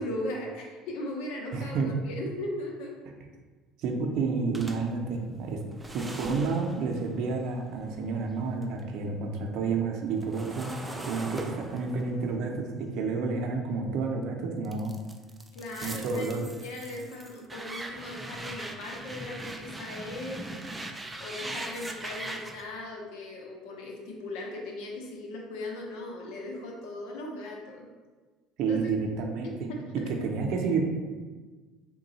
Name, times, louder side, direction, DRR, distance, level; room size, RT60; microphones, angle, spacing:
voice 1, 0.0-2.9 15.5-20.5 21.2-27.9 28.7-28.9 29.4-29.5 29.8-29.9, left 1 dB, 75° left, 0 dB, 0.8 m, -38 dB
voice 2, 1.5-1.9 3.8-5.6 5.9-10.7 11.0-14.9 15.8-16.5 28.6-29.7 30.1-30.8, right 4 dB, 60° right, 2 dB, 0.5 m, -30 dB
sound 1, 4.5-8.8 9.2-14.1 14.6-22.6, right 2 dB, 10° right, 0.3 m, -41 dB
3.7 x 2.3 x 4.0 m, 1.3 s
cardioid pair, 120°, 0 cm